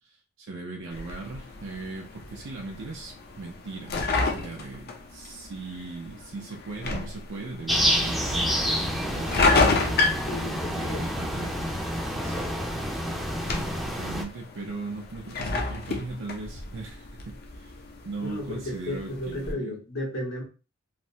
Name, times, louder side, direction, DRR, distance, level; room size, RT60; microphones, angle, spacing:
voice 1, 0.0-9.8 10.7-11.8 12.1-12.4 13.8-19.8, right 3 dB, 60° right, 0 dB, 0.5 m, -39 dB
sound 1, 0.9-19.5, left 3 dB, 50° left, 0.5 m, -31 dB
sound 2, 7.7-14.2, equal, ahead, 0.5 m, -28 dB
voice 2, 10.3-11.1 18.2-20.4, left 1 dB, 75° left, -3 dB, 1.2 m, -34 dB
3.2 x 2.0 x 2.7 m, 0.33 s
head